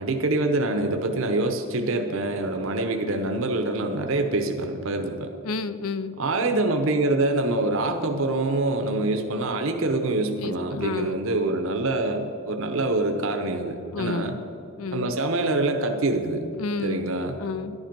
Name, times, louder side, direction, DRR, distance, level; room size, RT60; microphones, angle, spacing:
voice 1, 0.0-5.3 6.2-14.4 14.9-16.4 16.8-17.4, right 2 dB, 70° right, 6 dB, 0.8 m, -25 dB
voice 2, 5.4-6.1 10.4-11.2 13.9-14.4 14.8-15.2 16.6-17.1 17.4-17.8, left 4 dB, 85° left, 13 dB, 0.6 m, -30 dB
11.0 x 10.5 x 5.2 m, 2.7 s
head